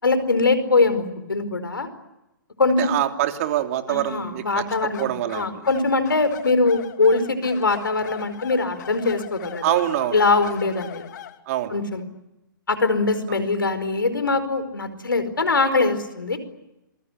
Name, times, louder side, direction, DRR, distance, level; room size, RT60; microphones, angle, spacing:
voice 1, 0.0-1.9 2.6-2.9 3.9-9.8 10.1-11.1 11.7-12.0 12.7-16.4, left 3 dB, 85° left, 12 dB, 4.8 m, -22 dB
voice 2, 2.8-4.6 5.0-5.7 9.6-10.3 11.5-11.8 13.3-13.4, right 12 dB, 45° right, 6 dB, 3.1 m, -25 dB
sound 1, 4.7-11.4, left 10 dB, 60° left, 3.1 m, -40 dB
27.0 x 22.0 x 9.9 m, 0.94 s
hypercardioid pair, 130°, 11 cm